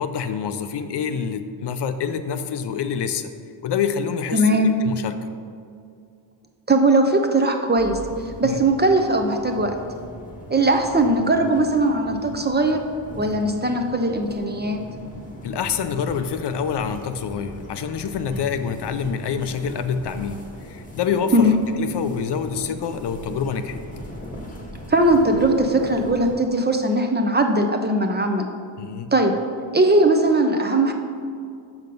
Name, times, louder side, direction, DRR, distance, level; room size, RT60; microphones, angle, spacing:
voice 1, 0.0-3.3 3.6-5.2 8.4-8.6 15.4-21.5 21.8-23.8 28.8-29.1, left 7 dB, 60° left, 9 dB, 0.5 m, -26 dB
voice 2, 4.3-4.7 6.7-8.0 8.4-9.8 10.5-12.8 13.2-14.8 21.3-21.6 24.9-28.5 29.1-29.4 29.7-30.9, right 1 dB, 20° right, 5 dB, 0.5 m, -19 dB
sound 1, 7.8-26.4, equal, 15° left, 1.0 m, -39 dB
6.4 x 5.9 x 5.2 m, 2.3 s
wide cardioid pair, 115°, 47 cm